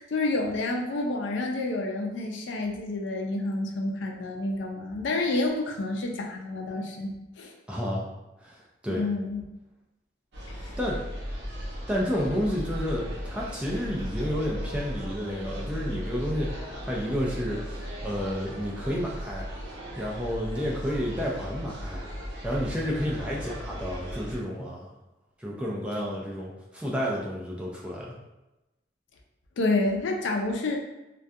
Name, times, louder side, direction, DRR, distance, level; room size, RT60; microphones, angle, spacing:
voice 1, 0.0-7.5 8.9-9.4 10.5-10.8 29.6-30.8, left 2 dB, 80° left, 1 dB, 0.4 m, -29 dB
voice 2, 7.7-8.0 8.4-9.0 10.8-11.0 11.9-16.5 16.8-19.5 20.0-22.1 22.4-24.9 25.4-28.1, equal, 5° right, -4 dB, 0.3 m, -30 dB
sound 1, 10.3-24.4, equal, 75° right, 0.7 m, -36 dB
2.3 x 2.2 x 2.6 m, 0.99 s
head